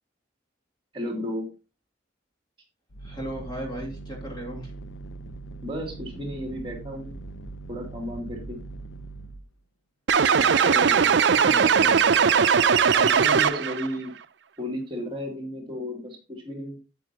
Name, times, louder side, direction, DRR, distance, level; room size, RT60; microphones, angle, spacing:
voice 1, 0.9-1.5 5.6-7.1 7.7-8.6 10.4-11.0 12.9-14.1 14.6-16.8, equal, 25° right, 1 dB, 2.8 m, -33 dB
sound 1, 2.9-9.5, right 2 dB, 75° left, 0.8 m, -40 dB
voice 2, 3.0-4.7 10.4-12.0 12.6-12.9, right 1 dB, 25° left, -1 dB, 2.6 m, -37 dB
sound 2, 10.1-13.9, right 6 dB, 65° right, 0.5 m, -19 dB
9.3 x 8.9 x 2.9 m, 0.29 s
head